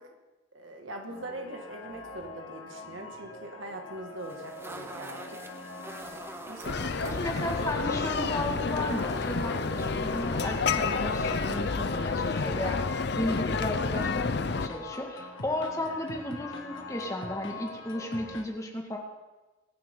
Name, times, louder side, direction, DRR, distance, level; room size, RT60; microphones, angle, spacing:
voice 1, 0.5-5.2 6.4-7.2, right 1 dB, 85° right, 2 dB, 2.2 m, -41 dB
sound 1, 1.1-18.4, left 2 dB, 90° left, 1.8 m, -43 dB
sound 2, 4.2-11.6, right 1 dB, 10° right, 1.0 m, -45 dB
sound 3, 6.6-14.7, left 4 dB, 60° left, 0.6 m, -30 dB
voice 2, 7.2-19.0, left 1 dB, 15° left, 1 dB, 1.9 m, -34 dB
24.5 x 9.9 x 3.9 m, 1.1 s
head